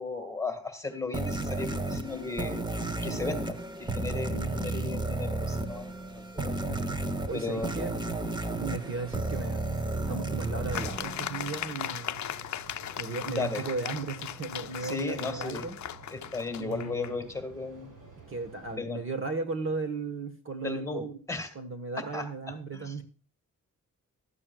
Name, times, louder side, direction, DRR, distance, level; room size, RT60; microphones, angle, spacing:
voice 1, 0.0-2.6 3.0-5.9 6.2-6.6 7.3-8.0 13.3-13.6 14.8-15.7 16.1-17.9 18.7-19.0 20.6-21.5 22.1-22.3 22.7-23.0, left 3 dB, 10° left, 6 dB, 1.8 m, -35 dB
sound 1, 1.1-11.9, right 2 dB, 15° right, 0.9 m, -33 dB
voice 2, 4.3-4.6 6.7-7.9 8.6-12.2 13.0-15.8 16.6-17.3 18.3-21.2 21.5-23.0, right 4 dB, 40° right, 9 dB, 1.3 m, -36 dB
sound 2, 7.5-18.8, right 2 dB, 85° right, 7.7 m, -51 dB
sound 3, 10.7-17.1, left 10 dB, 65° left, 0.6 m, -38 dB
15.0 x 13.0 x 2.3 m, 0.39 s
wide cardioid pair, 170°, 31 cm